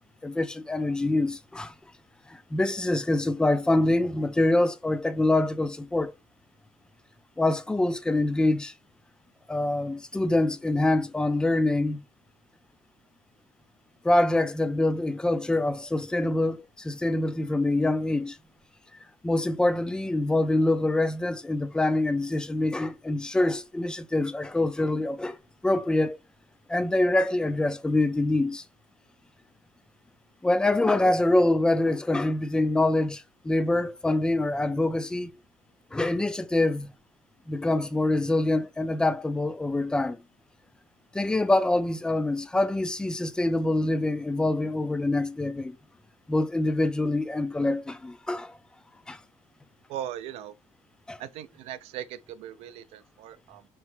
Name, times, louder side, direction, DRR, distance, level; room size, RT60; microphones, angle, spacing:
voice 1, 0.2-1.7 2.3-6.1 7.4-8.7 9.5-12.0 14.0-18.4 19.2-25.4 25.6-26.2 26.7-28.6 30.4-35.3 35.9-36.9 37.5-40.2 41.1-45.8 46.3-48.6 49.1-49.2 51.1-51.2, left 2 dB, 5° left, 0.3 m, -25 dB
voice 2, 49.9-50.5 51.2-53.7, right 11 dB, 65° right, 0.4 m, -39 dB
3.9 x 3.0 x 3.2 m
cardioid pair, 130°, 11 cm